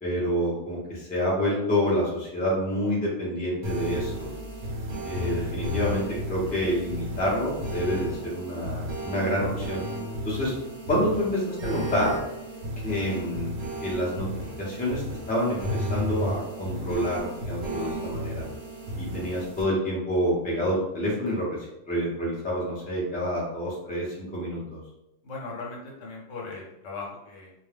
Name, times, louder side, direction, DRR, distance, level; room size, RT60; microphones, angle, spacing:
voice 1, 0.0-4.3 5.0-9.8 10.2-10.5 10.9-12.1 12.8-13.5 13.8-14.3 14.6-15.0 15.3-18.5 19.0-21.6 21.9-24.8, equal, 10° left, -5 dB, 0.5 m, -28 dB
sound 1, 3.6-19.6, equal, 80° right, 1.0 m, -33 dB
voice 2, 25.2-27.5, left 3 dB, 70° left, -2 dB, 1.0 m, -38 dB
2.4 x 2.2 x 3.3 m, 0.87 s
omnidirectional pair, 1.4 m